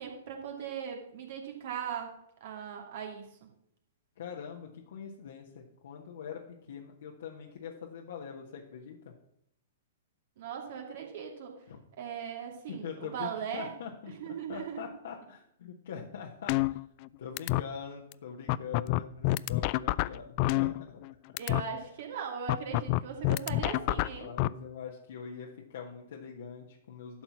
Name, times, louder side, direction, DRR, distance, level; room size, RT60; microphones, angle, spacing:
voice 1, 0.0-2.1 2.4-3.3 10.4-11.6 12.0-13.7 14.2-14.8 21.4-24.3, right 7 dB, 55° right, 2 dB, 2.5 m, -39 dB
voice 2, 4.2-9.1 11.7-11.8 12.7-16.8 17.2-21.0 23.8-27.2, left 7 dB, 65° left, 0 dB, 1.3 m, -43 dB
sound 1, 16.5-17.1 17.4-17.6 18.1-18.2 18.5-21.1 21.4-21.6 22.5-24.5, left 18 dB, 45° left, 0.3 m, -27 dB
12.0 x 4.4 x 7.2 m, 0.74 s
hypercardioid pair, 115°, 0 cm